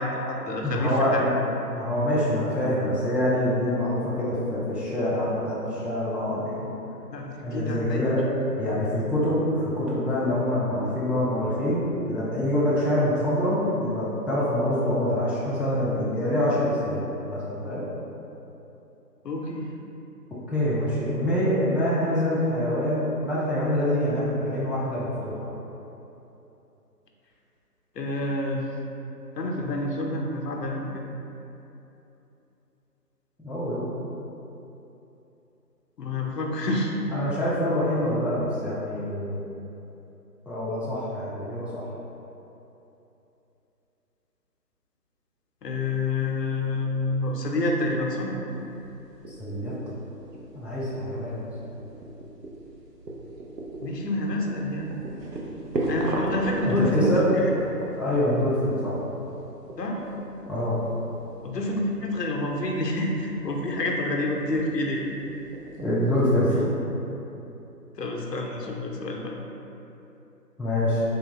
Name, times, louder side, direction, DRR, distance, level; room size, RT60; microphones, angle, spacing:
voice 1, 0.0-1.3 7.1-8.4 19.2-19.7 28.0-28.7 29.4-31.0 36.0-36.9 45.6-48.3 53.8-55.0 55.9-57.5 59.8-60.0 61.4-65.1 68.0-69.3, left 2 dB, 80° left, 0 dB, 0.6 m, -28 dB
voice 2, 0.6-1.3 1.6-6.7 7.4-8.2 8.6-17.0 17.3-17.8 20.5-25.5 33.4-33.9 37.1-39.4 40.5-41.8 49.3-49.7 50.5-51.5 56.7-57.3 58.0-59.0 60.5-60.8 65.8-66.8 70.6-71.0, left 1 dB, 5° right, -8 dB, 0.3 m, -25 dB
sound 1, 48.5-66.6, right 1 dB, 85° right, 0.7 m, -37 dB
3.4 x 2.1 x 2.9 m, 3.0 s
figure-of-eight pair, 155°, 48 cm